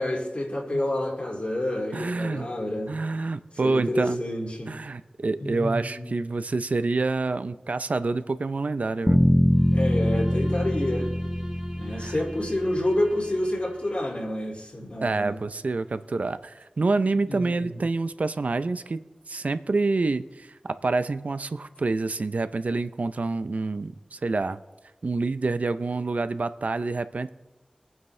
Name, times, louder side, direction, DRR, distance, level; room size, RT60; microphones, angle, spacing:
voice 1, 0.0-2.9 3.6-4.7 5.4-6.1 9.7-11.1 11.7-15.4 17.3-17.8, left 1 dB, 55° left, 0 dB, 2.4 m, -29 dB
voice 2, 1.9-2.5 2.9-4.2 4.7-9.2 12.0-12.2 15.0-24.6 25.0-27.3, right 3 dB, 75° right, 12 dB, 0.5 m, -27 dB
sound 1, 9.1-13.2, equal, 10° left, 0.8 m, -23 dB
Bowed string instrument, 9.5-14.4, right 1 dB, 25° right, 2.5 m, -45 dB
23.0 x 9.2 x 3.3 m, 1.1 s
wide cardioid pair, 65°, 2 cm